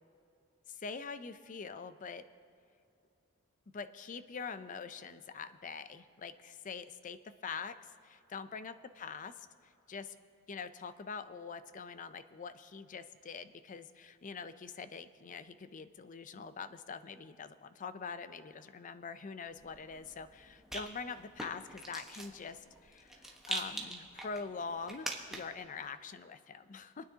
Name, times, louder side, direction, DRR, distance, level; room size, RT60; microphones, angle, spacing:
voice 1, 0.7-2.2 3.7-7.8 8.0-10.1 10.5-27.1, left 5 dB, 35° left, 12 dB, 0.5 m, -44 dB
Rattle, 19.6-25.7, right 1 dB, ahead, 1.1 m, -44 dB
26.5 x 9.7 x 2.8 m, 2.7 s
head